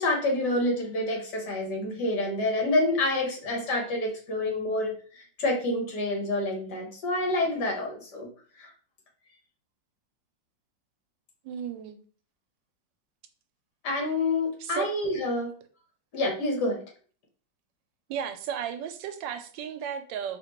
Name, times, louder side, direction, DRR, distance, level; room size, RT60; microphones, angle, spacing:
voice 1, 0.0-8.3 8.6-8.7 13.8-15.5 16.1-16.8, left 2 dB, 70° left, 1.7 m, -28 dB
voice 2, 11.4-12.0 14.6-14.9 18.1-20.4, right 8 dB, 90° right, 1.3 m, -34 dB
4.2 x 2.7 x 2.9 m
omnidirectional pair, 1.9 m